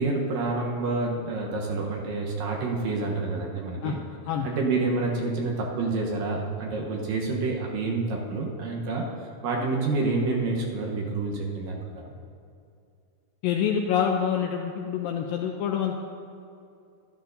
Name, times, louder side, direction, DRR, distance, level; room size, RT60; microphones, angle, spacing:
voice 1, 0.0-4.0 4.4-9.1 9.4-11.8 12.0-12.1, right 3 dB, 70° right, -1 dB, 2.4 m, -28 dB
voice 2, 13.4-16.0, left 8 dB, 85° left, 3 dB, 2.0 m, -26 dB
12.5 x 11.5 x 2.6 m, 2.5 s
omnidirectional pair, 4.4 m